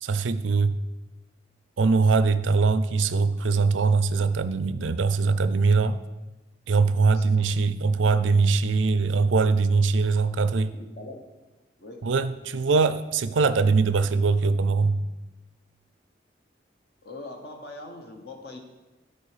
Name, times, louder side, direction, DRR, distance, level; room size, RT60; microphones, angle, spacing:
voice 1, 0.0-0.8 1.8-6.0 6.7-10.7 12.0-15.0, right 4 dB, 85° right, 0.5 m, -22 dB
voice 2, 7.1-7.5 10.7-11.2 11.8-12.1 17.0-18.6, left 2 dB, 55° left, 0.9 m, -42 dB
12.5 x 4.3 x 4.9 m
head